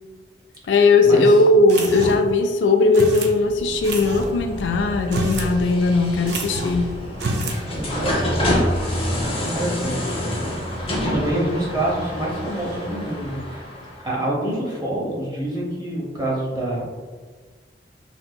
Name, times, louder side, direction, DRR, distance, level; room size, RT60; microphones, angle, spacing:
voice 1, 0.7-6.9, left 3 dB, 80° left, 6 dB, 0.3 m, -18 dB
sound 1, 1.7-2.3 2.9-3.3 3.8-4.3 5.0-5.5 5.8-5.9 6.3-6.8 7.1-7.6, right 2 dB, 65° right, 0.5 m, -28 dB
sound 2, 3.4-14.1, left 1 dB, 30° left, 0.7 m, -27 dB
voice 2, 7.7-8.6 9.2-10.0 11.1-13.7 14.0-16.9, right 1 dB, 20° right, -4 dB, 0.8 m, -26 dB
3.5 x 2.7 x 2.2 m, 1.4 s
head